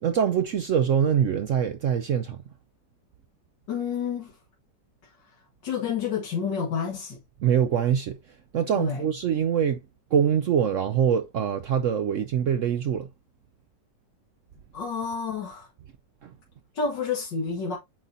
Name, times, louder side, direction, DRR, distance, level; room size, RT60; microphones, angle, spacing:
voice 1, 0.0-2.4 7.4-8.2 8.5-9.8 10.1-13.1 16.2-16.3, right 8 dB, 70° right, 0.7 m, -24 dB
voice 2, 3.7-4.4 5.6-7.2 8.7-9.0 14.7-15.7 16.7-17.8, left 6 dB, 80° left, 2.3 m, -29 dB
9.0 x 4.1 x 2.6 m
omnidirectional pair, 1.9 m